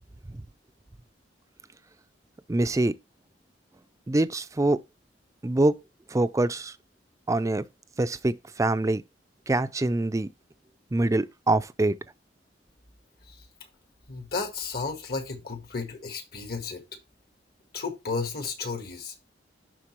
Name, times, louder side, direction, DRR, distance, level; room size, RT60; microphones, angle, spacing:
voice 1, 2.5-2.9 4.1-4.8 5.4-5.7 6.1-6.7 7.3-7.6 8.0-8.3 8.6-9.0 9.5-10.3 10.9-11.9, right 2 dB, 20° right, 0.4 m, -24 dB
voice 2, 14.1-16.8 17.7-19.1, left 4 dB, 60° left, 1.6 m, -33 dB
11.0 x 4.0 x 3.1 m
head